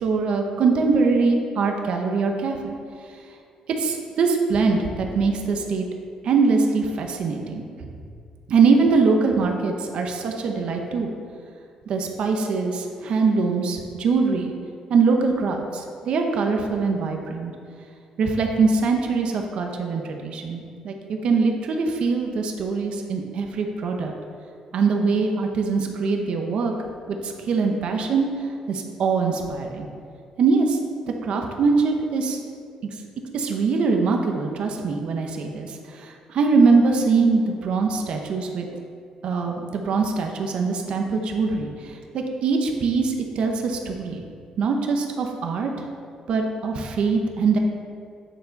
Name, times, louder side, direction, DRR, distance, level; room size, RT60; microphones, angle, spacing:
voice 1, 0.0-2.8 3.7-5.9 6.2-7.9 8.5-11.1 11.9-14.5 14.9-17.5 18.2-24.1 24.7-26.7 27.2-28.3 28.7-29.9 30.4-30.8 31.2-32.4 33.3-38.7 39.2-44.2 44.6-45.7 46.3-47.6, right 4 dB, 55° right, 3 dB, 0.9 m, -22 dB
9.3 x 6.8 x 4.0 m, 2.3 s
cardioid pair, 155°, 2 cm